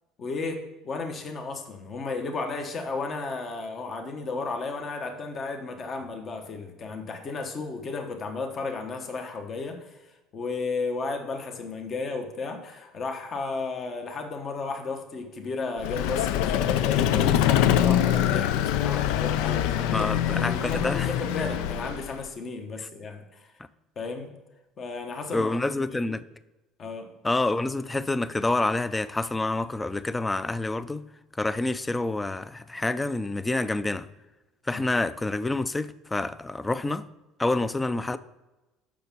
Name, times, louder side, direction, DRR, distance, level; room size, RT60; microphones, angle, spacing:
voice 1, 0.2-23.5 24.0-24.3 24.8-25.5 26.1-26.2 26.8-27.1 34.7-34.8, left 4 dB, 40° left, 1.1 m, -34 dB
Vehicle, 15.8-22.2, left 11 dB, 80° left, 0.4 m, -24 dB
voice 2, 19.9-21.1 25.3-26.2 27.2-31.0 31.4-34.1 34.7-37.0 37.4-38.2, left 2 dB, 15° left, 0.4 m, -27 dB
6.9 x 6.0 x 5.3 m
supercardioid pair, 110°, 0 cm